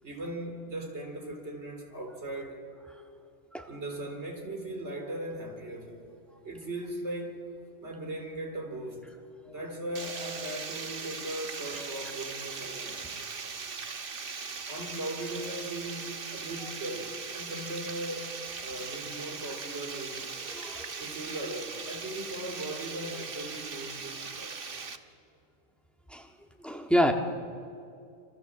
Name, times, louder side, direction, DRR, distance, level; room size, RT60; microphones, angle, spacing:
voice 1, 0.0-2.6 3.7-6.0 6.4-7.4 7.8-9.2 9.5-13.3 14.7-18.3 18.6-20.4 21.0-24.5, right 1 dB, 75° right, 3.8 m, -38 dB
Water, 10.0-25.0, right 5 dB, 55° right, 1.3 m, -39 dB
voice 2, 20.5-21.0 26.1-26.3 26.6-27.1, equal, ahead, 1.7 m, -27 dB
27.5 x 26.5 x 7.2 m
omnidirectional pair, 1.2 m